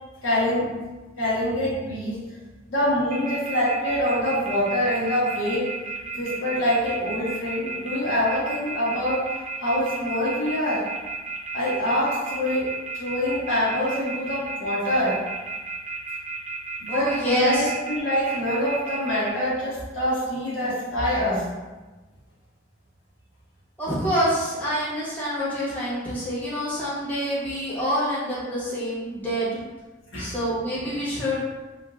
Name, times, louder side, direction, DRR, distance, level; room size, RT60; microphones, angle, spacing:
voice 1, 0.2-0.7 1.2-2.2 2.7-5.7 6.2-9.3 9.6-10.8 11.5-12.7 12.9-15.2 16.8-21.5 30.1-30.3, equal, 80° left, -7 dB, 1.3 m, -25 dB
sound 1, 3.1-19.3, right 4 dB, 35° right, 0.6 m, -33 dB
voice 2, 16.9-17.7 23.8-29.6 30.2-31.4, equal, 10° left, -10 dB, 1.2 m, -26 dB
4.5 x 2.6 x 2.4 m, 1.2 s
head